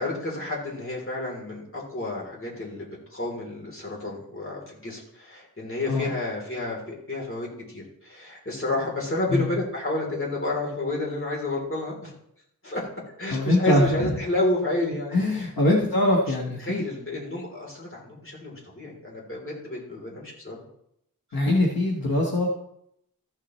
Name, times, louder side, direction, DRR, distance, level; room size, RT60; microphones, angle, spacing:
voice 1, 0.0-12.1 12.6-12.8 13.2-15.8 16.2-16.3 16.6-20.6, left 2 dB, 35° left, -3 dB, 3.4 m, -30 dB
voice 2, 13.3-14.2 15.1-16.8 21.3-22.5, left 1 dB, 90° left, -1 dB, 1.4 m, -23 dB
14.0 x 7.3 x 3.2 m, 0.76 s
wide cardioid pair, 80°, 35 cm